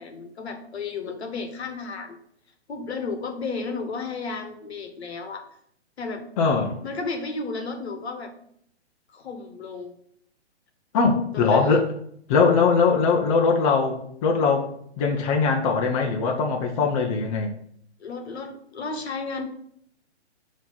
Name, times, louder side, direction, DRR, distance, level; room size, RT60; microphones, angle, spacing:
voice 1, 0.0-2.2 2.7-5.5 6.0-6.2 6.8-8.3 9.1-10.0 11.3-11.8 18.0-19.5, left 4 dB, 65° left, 6 dB, 1.3 m, -33 dB
voice 2, 6.4-6.8 10.9-11.9 12.3-14.7 15.0-17.5, left 4 dB, 30° left, 1 dB, 0.8 m, -21 dB
6.1 x 3.1 x 5.5 m, 0.67 s
figure-of-eight pair, 130°, 34 cm